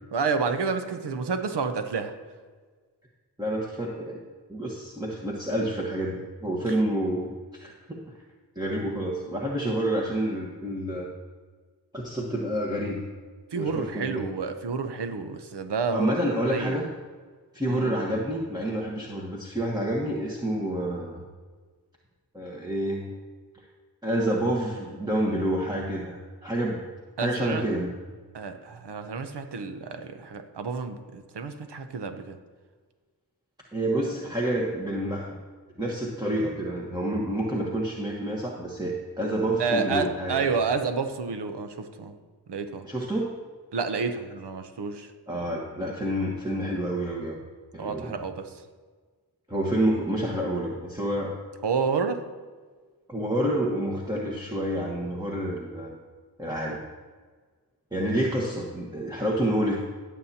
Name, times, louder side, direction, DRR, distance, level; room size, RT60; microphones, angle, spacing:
voice 1, 0.1-2.1 13.5-16.1 16.5-16.8 17.7-17.9 27.2-27.6 28.3-32.4 39.6-42.1 42.5-42.9 43.7-45.1 47.8-48.6 51.6-52.2, right 5 dB, 85° right, 7 dB, 0.8 m, -29 dB
voice 2, 3.4-4.2 4.5-7.3 7.6-8.0 8.5-11.1 12.0-13.0 13.5-14.2 15.9-16.8 17.5-21.2 22.3-23.1 24.0-26.2 26.4-26.8 27.2-27.9 33.7-35.4 35.8-40.5 42.8-43.3 45.3-47.4 47.7-48.1 49.5-51.3 53.1-55.9 56.4-56.8 57.9-59.8, right 1 dB, 10° right, -2 dB, 1.3 m, -28 dB
17.0 x 7.4 x 2.8 m, 1.5 s
cardioid pair, 40°, 40 cm